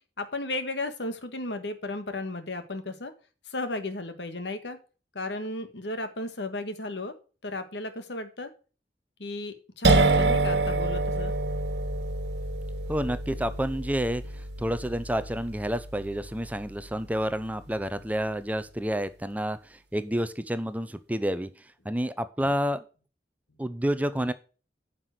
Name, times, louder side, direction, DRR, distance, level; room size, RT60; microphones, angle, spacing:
voice 1, 0.2-3.1 3.4-4.8 5.1-7.1 7.4-8.5 9.2-11.3, left 2 dB, 80° left, 9 dB, 1.5 m, -34 dB
sound 1, 9.8-17.4, right 2 dB, 70° right, 1.5 m, -27 dB
voice 2, 12.9-21.5 21.8-22.8 23.6-24.3, equal, 10° right, 13 dB, 0.6 m, -29 dB
9.3 x 5.9 x 6.3 m, 0.36 s
head